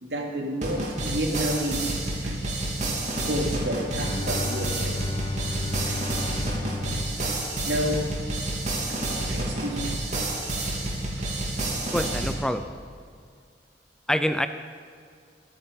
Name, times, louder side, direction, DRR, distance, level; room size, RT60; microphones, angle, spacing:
voice 1, 0.0-2.0 2.2-2.4 2.8-5.1 5.8-6.1 7.6-8.1 8.9-9.9 11.2-11.3, equal, 80° right, 1 dB, 2.6 m, -31 dB
sound 1, 0.6-12.3, right 1 dB, 45° right, 3.2 m, -29 dB
Bowed string instrument, 4.0-8.1, left 2 dB, 30° left, 1.2 m, -34 dB
voice 2, 11.9-12.7 14.1-14.5, equal, 5° left, 9 dB, 0.5 m, -25 dB
26.0 x 8.9 x 5.3 m, 2.2 s
head